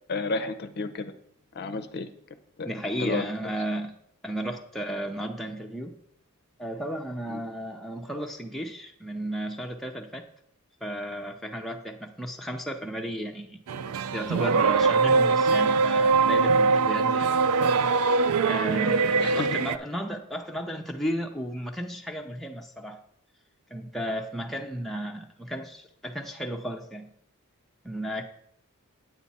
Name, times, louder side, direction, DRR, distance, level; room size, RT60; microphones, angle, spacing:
voice 1, 0.1-1.1 1.5-2.1 2.6-2.7 3.0-3.3 7.3-7.4 19.2-19.5, left 3 dB, 50° left, 9 dB, 0.6 m, -31 dB
voice 2, 2.6-3.9 4.2-6.0 6.6-10.2 10.8-13.6 14.1-17.4 18.5-23.0 23.7-27.1 27.8-28.2, equal, ahead, 1 dB, 0.6 m, -34 dB
sound 1, 13.7-19.8, right 4 dB, 75° right, 0.4 m, -22 dB
9.1 x 8.2 x 4.1 m, 0.72 s
head